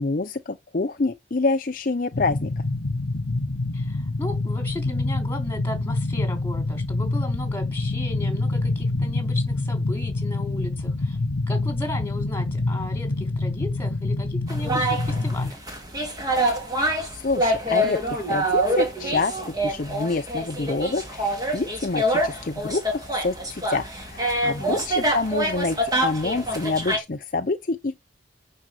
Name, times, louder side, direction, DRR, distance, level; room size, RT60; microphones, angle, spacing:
voice 1, 0.0-2.6 17.1-28.0, left 3 dB, 45° left, 0.6 m, -27 dB
sound 1, 2.1-15.5, left 2 dB, 90° left, 0.9 m, -26 dB
voice 2, 3.7-11.2 11.5-15.6 24.4-24.9, left 1 dB, 10° left, 3.6 m, -36 dB
sound 2, 14.5-27.0, right 1 dB, 20° right, 3.0 m, -26 dB
8.9 x 5.4 x 7.7 m
head